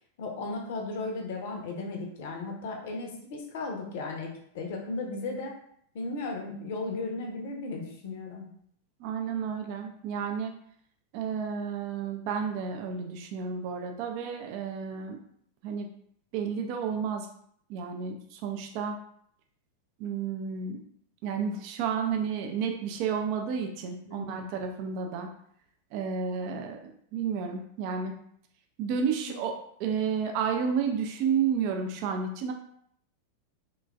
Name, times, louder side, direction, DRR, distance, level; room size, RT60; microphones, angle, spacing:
voice 1, 0.2-5.5 5.9-8.5 24.0-24.5 29.3-29.4, left 3 dB, 55° left, 2 dB, 0.6 m, -35 dB
voice 2, 9.0-10.6 11.1-15.2 15.6-15.9 16.3-17.3 17.7-19.0 20.0-20.8 21.2-25.3 25.9-28.1 28.8-32.5, right 6 dB, 45° right, 3 dB, 0.4 m, -31 dB
3.1 x 2.3 x 2.3 m, 0.66 s
figure-of-eight pair, 90°, 0 cm